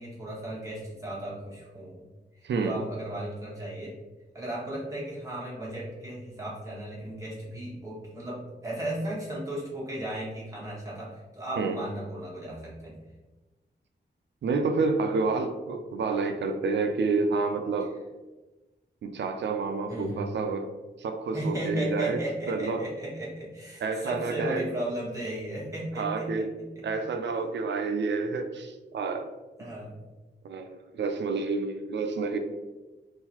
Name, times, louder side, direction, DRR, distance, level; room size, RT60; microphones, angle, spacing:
voice 1, 0.0-2.0 2.3-3.9 4.3-13.0 19.9-20.3 21.3-26.9 29.6-30.0, right 1 dB, 20° right, -7 dB, 1.2 m, -35 dB
voice 2, 2.4-2.8 11.6-11.8 14.4-17.9 19.0-20.7 21.0-22.2 22.5-22.8 23.8-24.7 26.0-26.5 26.8-29.3 30.4-32.4, right 4 dB, 90° right, 6 dB, 0.4 m, -29 dB
3.8 x 2.6 x 2.8 m, 1.2 s
wide cardioid pair, 155°, 18 cm